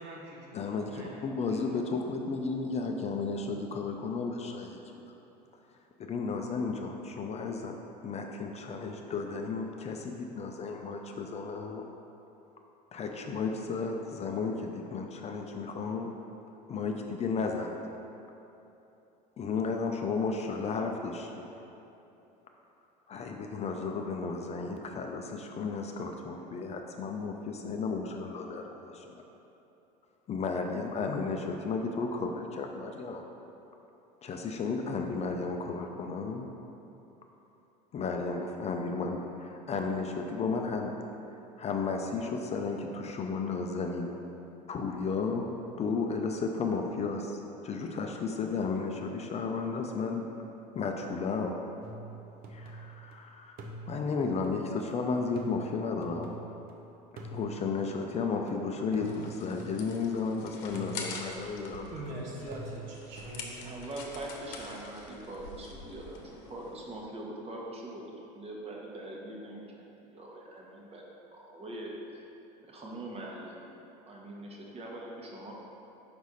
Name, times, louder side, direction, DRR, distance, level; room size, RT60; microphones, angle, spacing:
voice 1, 0.0-1.1 61.9-63.8, right 1 dB, 60° right, -3 dB, 1.3 m, -43 dB
voice 2, 0.5-5.1 6.0-7.8 8.0-11.9 12.9-16.1 16.7-17.7 19.4-21.5 23.1-29.2 30.3-33.3 34.2-36.5 37.9-40.9 41.6-44.1 44.7-50.2 50.7-51.6 52.5-53.6 53.9-56.3 57.3-62.0, left 4 dB, 30° left, 3 dB, 0.5 m, -33 dB
sound 1, 51.8-53.2 53.6-56.7 57.2-60.3 60.7-63.4, right 3 dB, 45° right, 0.8 m, -46 dB
sound 2, 59.0-67.0, left 4 dB, 65° left, 0.9 m, -46 dB
voice 3, 63.6-68.0 68.3-69.8 70.1-71.0 71.3-72.2 72.6-73.7 74.1-75.5, right 1 dB, 30° right, -2 dB, 1.2 m, -42 dB
5.2 x 4.7 x 4.1 m, 2.9 s
hypercardioid pair, 85°, 21 cm